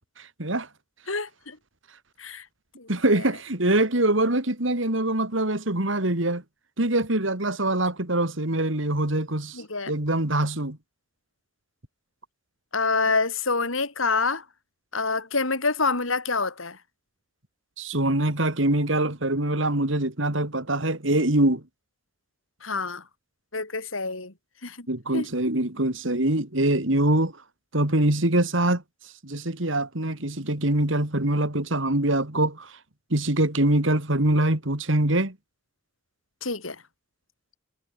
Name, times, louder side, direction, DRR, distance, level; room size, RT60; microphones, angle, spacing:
voice 1, 0.2-0.7 2.9-6.4 6.8-10.8 17.8-21.6 24.9-27.3 27.7-28.8 29.2-32.7 33.1-35.4, right 1 dB, 70° right, 3.2 m, -24 dB
voice 2, 1.1-1.6 2.2-2.4 2.8-2.9 9.5-9.9 12.7-14.4 14.9-16.8 22.6-23.0 23.5-24.3 24.6-24.9 25.1-25.3 36.4-36.8, left 4 dB, 85° left, 4.8 m, -27 dB
head